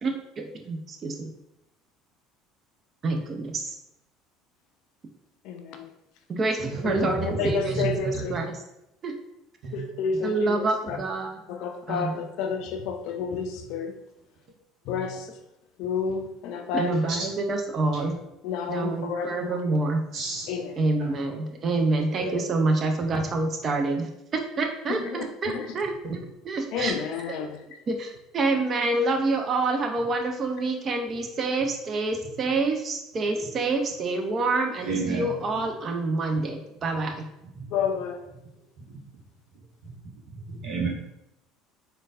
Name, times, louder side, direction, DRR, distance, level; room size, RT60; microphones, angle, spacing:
voice 1, 0.0-1.3 3.0-3.8 6.3-8.6 9.0-9.2 10.2-11.4 11.9-12.3 16.7-18.2 18.7-20.0 20.8-25.9 26.5-27.0 27.3-27.4 27.9-37.3, right 3 dB, 40° right, 4 dB, 0.6 m, -27 dB
voice 2, 5.5-5.9 6.8-8.4 9.7-11.0 11.5-13.9 14.9-15.3 15.8-17.0 18.4-19.5 20.5-20.7 25.0-25.2 25.5-25.7 26.7-27.6 37.7-38.2, left 6 dB, 65° left, 6 dB, 0.4 m, -30 dB
voice 3, 6.6-8.4 9.6-9.8 10.1-10.2 10.9-11.0 17.1-17.3 18.0-18.1 20.1-20.5 21.0-21.1 22.1-22.4 26.0-26.2 33.4-33.5 34.8-35.6 37.5-37.7 38.8-39.0 39.8-40.0 40.3-40.9, right 3 dB, 55° right, -1 dB, 0.9 m, -32 dB
3.9 x 2.2 x 2.4 m, 0.87 s
hypercardioid pair, 70°, 0 cm